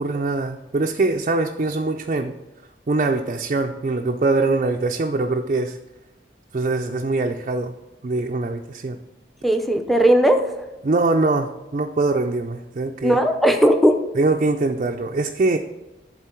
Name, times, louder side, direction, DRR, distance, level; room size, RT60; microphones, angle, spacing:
voice 1, 0.0-2.4 2.9-5.8 6.5-7.7 8.0-9.0 10.8-13.2 14.2-15.6, right 3 dB, 40° right, 2 dB, 0.4 m, -22 dB
voice 2, 9.4-10.5 13.0-14.0, right 1 dB, ahead, 5 dB, 0.6 m, -17 dB
12.0 x 4.0 x 4.4 m, 1.1 s
head